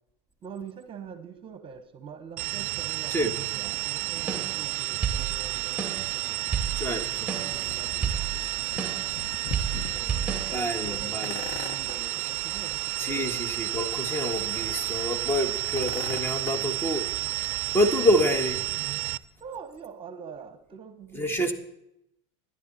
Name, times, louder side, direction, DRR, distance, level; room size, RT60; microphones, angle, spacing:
voice 1, 0.4-6.5 7.4-8.1 8.4-8.8 9.7-13.4 19.4-21.5, right 6 dB, 35° right, 10 dB, 1.2 m, -44 dB
sound 1, 2.4-19.2, right 23 dB, 50° right, 0.5 m, -31 dB
sound 2, 4.2-10.5, right 6 dB, 5° right, 2.3 m, -33 dB
sound 3, 5.1-19.1, left 7 dB, 45° left, 1.1 m, -44 dB
voice 2, 6.8-7.3 10.5-11.4 13.0-17.0 17.7-18.6 21.1-21.5, equal, 15° left, 8 dB, 1.7 m, -27 dB
13.0 x 11.0 x 4.2 m, 0.79 s
supercardioid pair, 110°, 16 cm